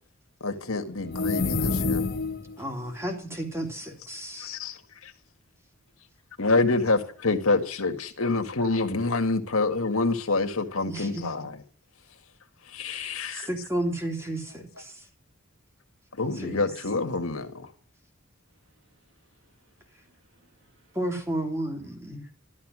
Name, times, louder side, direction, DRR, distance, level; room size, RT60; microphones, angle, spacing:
voice 1, 0.4-2.0 4.4-4.8 5.0-5.1 6.4-11.6 12.7-13.5 16.2-17.7, left 3 dB, 85° left, 1.9 m, -27 dB
sound 1, 1.0-2.6, left 3 dB, 45° left, 1.3 m, -27 dB
voice 2, 2.6-4.5 10.9-11.3 12.9-15.0 16.3-16.6 20.9-22.2, right 1 dB, 15° right, 3.1 m, -32 dB
voice 3, 19.4-21.0, right 2 dB, 65° right, 2.3 m, -62 dB
13.0 x 12.0 x 6.3 m
head